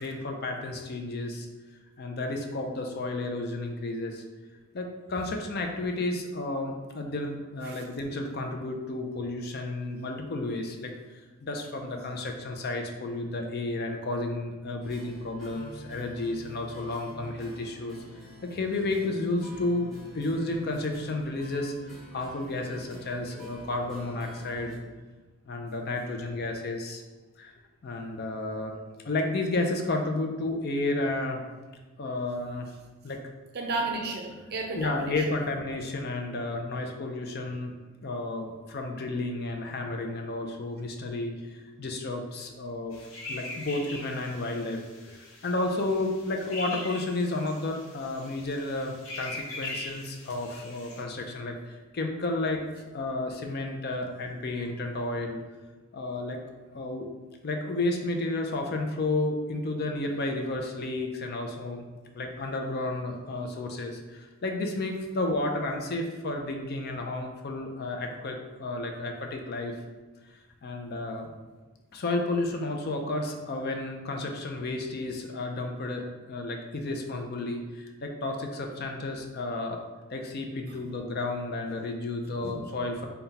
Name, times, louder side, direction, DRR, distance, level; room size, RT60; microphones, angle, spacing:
voice 1, 0.0-1.5 2.0-4.2 4.7-10.9 11.4-18.0 18.4-21.7 22.1-24.8 25.5-27.0 27.4-27.5 27.8-28.7 29.0-31.4 32.0-32.7 33.0-33.2 34.7-37.7 38.0-42.9 43.3-45.2 45.4-55.4 55.9-56.4 56.7-57.1 57.4-61.9 62.1-69.7 70.3-71.3 71.9-79.8 80.1-83.1, left 2 dB, 45° left, 3 dB, 0.4 m, -32 dB
sound 1, 14.8-24.8, equal, ahead, 0.8 m, -47 dB
voice 2, 33.5-35.2 80.7-80.8 82.4-82.6, right 3 dB, 45° right, 2 dB, 0.5 m, -33 dB
sound 2, 42.9-51.0, left 2 dB, 65° left, 0.9 m, -42 dB
4.0 x 2.2 x 3.9 m, 1.3 s
head